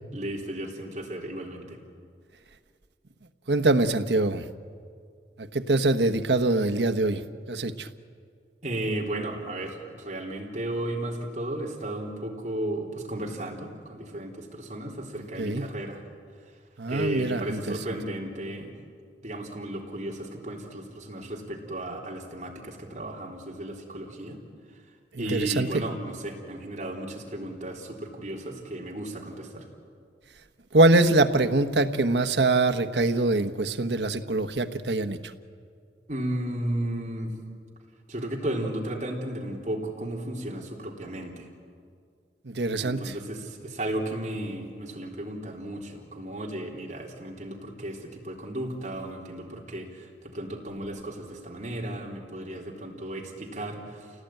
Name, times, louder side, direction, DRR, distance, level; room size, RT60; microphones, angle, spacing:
voice 1, 0.1-1.8 8.6-16.0 16.9-18.7 19.2-24.4 25.2-29.7 36.1-37.3 38.1-41.5 42.8-54.1, right 1 dB, 45° right, -1 dB, 3.5 m, -34 dB
voice 2, 3.5-4.4 5.5-7.2 7.5-7.9 15.4-15.6 16.8-17.7 25.1-25.7 30.7-35.2 42.5-43.1, right 2 dB, 80° right, 8 dB, 1.2 m, -23 dB
28.5 x 18.0 x 9.1 m, 2.2 s
head